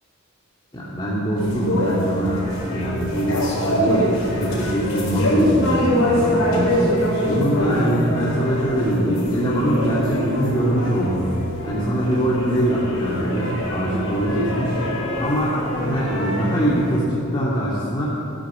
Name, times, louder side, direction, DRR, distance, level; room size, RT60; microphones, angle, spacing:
voice 1, 0.7-2.4 2.7-4.1 4.3-6.8 7.3-11.2 11.6-14.7 15.2-18.1, equal, 20° left, -9 dB, 2.3 m, -23 dB
sound 1, 1.4-17.0, equal, 85° left, 4.5 m, -24 dB
15.5 x 10.5 x 7.6 m, 2.7 s
head